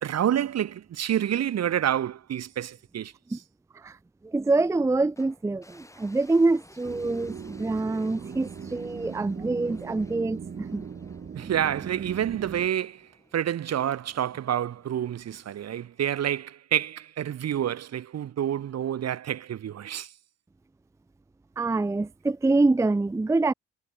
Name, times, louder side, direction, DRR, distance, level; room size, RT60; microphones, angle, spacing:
voice 1, 0.0-3.1 11.3-13.1 13.3-20.1, right 10 dB, 55° right, 1.4 m, -28 dB
voice 2, 4.2-10.8 21.6-23.5, right 3 dB, 10° right, 0.5 m, -25 dB
sound 1, 5.2-16.4, left 1 dB, 10° left, 6.0 m, -57 dB
sound 2, 6.8-12.7, right 6 dB, 35° right, 1.3 m, -39 dB
cardioid pair, 90°, 30 cm